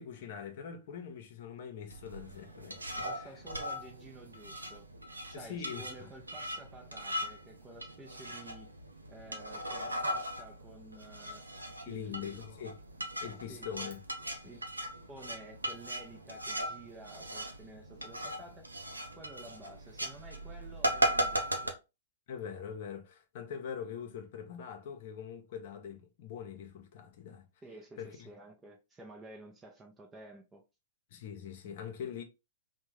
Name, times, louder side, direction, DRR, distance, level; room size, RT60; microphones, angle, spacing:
voice 1, 0.0-3.3 5.3-6.1 11.9-12.8 13.2-14.0 22.3-27.5 28.0-28.3 31.1-32.2, left 8 dB, 50° left, 0.7 m, -43 dB
sound 1, 1.9-21.7, right 1 dB, 85° right, 0.6 m, -38 dB
voice 2, 3.0-4.9 5.3-8.7 9.1-11.5 11.9-12.4 13.5-13.7 14.4-14.6 15.1-18.7 19.2-21.8 27.6-30.6, right 2 dB, 15° right, 0.6 m, -51 dB
3.5 x 2.2 x 3.1 m
figure-of-eight pair, 105°, 0 cm